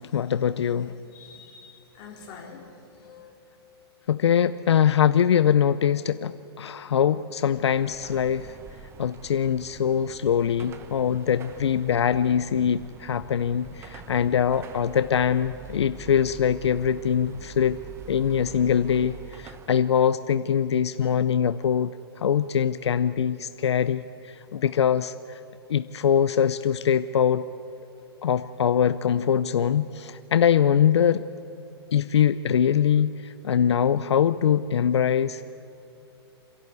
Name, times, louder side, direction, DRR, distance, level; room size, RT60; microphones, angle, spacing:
voice 1, 0.1-0.9 4.1-8.6 9.0-17.8 18.1-21.9 22.2-24.0 24.5-25.4 25.7-27.4 28.2-31.3 31.9-35.4, left 8 dB, 85° left, 13 dB, 0.6 m, -23 dB
voice 2, 1.0-3.3, left 5 dB, 30° left, -1 dB, 4.1 m, -46 dB
Car passing by / Traffic noise roadway noise / Engine, 7.4-20.0, right 6 dB, 20° right, 0.9 m, -45 dB
29.0 x 11.5 x 8.3 m, 2.8 s
hypercardioid pair, 140°, 14 cm